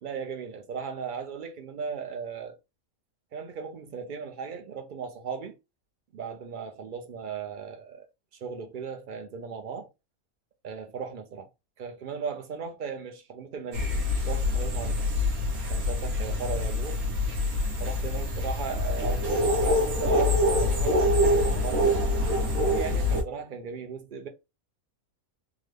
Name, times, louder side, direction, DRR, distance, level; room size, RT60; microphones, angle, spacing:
voice 1, 0.0-2.6 3.3-5.5 6.1-8.1 8.4-9.9 10.6-11.5 11.8-13.9 14.3-15.1 15.7-17.0 17.8-22.0 22.6-24.3, right 6 dB, 65° right, 0.5 m, -37 dB
sound 1, 13.7-23.2, left 1 dB, 80° right, 1.5 m, -25 dB
3.7 x 2.1 x 3.2 m
omnidirectional pair, 1.5 m